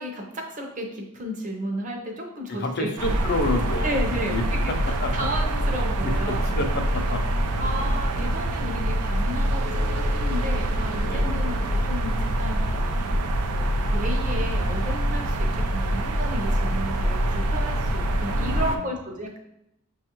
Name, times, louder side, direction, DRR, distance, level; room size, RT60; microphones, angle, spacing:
voice 1, 0.0-2.9 3.8-4.7 5.1-6.5 7.1-7.2 7.6-11.6 11.8-19.4, equal, 35° right, 2 dB, 0.6 m, -33 dB
voice 2, 2.5-5.1 5.8-7.5 11.0-11.5 18.3-19.0, left 2 dB, 50° left, 4 dB, 0.5 m, -30 dB
sound 1, 3.0-18.8, right 1 dB, 90° right, 0.4 m, -25 dB
sound 2, 6.3-6.7 7.1-8.4 9.1-10.6 10.9-11.8, left 1 dB, 85° left, 0.8 m, -46 dB
sound 3, 9.6-14.9, left 3 dB, 60° right, 0.9 m, -43 dB
5.9 x 2.3 x 2.9 m, 0.82 s
head